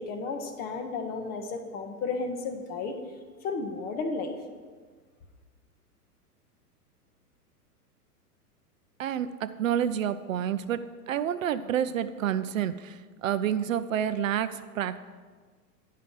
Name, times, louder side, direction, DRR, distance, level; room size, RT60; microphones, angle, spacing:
voice 1, 0.0-3.0 3.4-4.3, left 4 dB, 20° left, 6 dB, 0.6 m, -33 dB
voice 2, 9.0-15.0, right 9 dB, 60° right, 13 dB, 0.5 m, -29 dB
9.6 x 5.5 x 5.3 m, 1.5 s
figure-of-eight pair, 100°, 47 cm